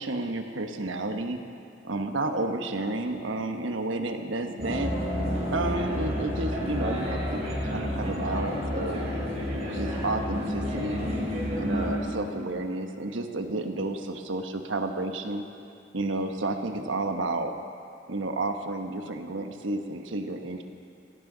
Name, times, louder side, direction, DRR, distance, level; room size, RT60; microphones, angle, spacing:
voice 1, 0.0-1.4 1.8-4.9 5.5-9.1 9.7-11.0 11.5-15.4 15.9-17.5 18.1-20.6, right 2 dB, 90° right, 5 dB, 1.1 m, -31 dB
sound 1, 4.6-12.0, equal, 35° right, 3.6 m, -30 dB
17.5 x 16.0 x 4.0 m, 2.4 s
head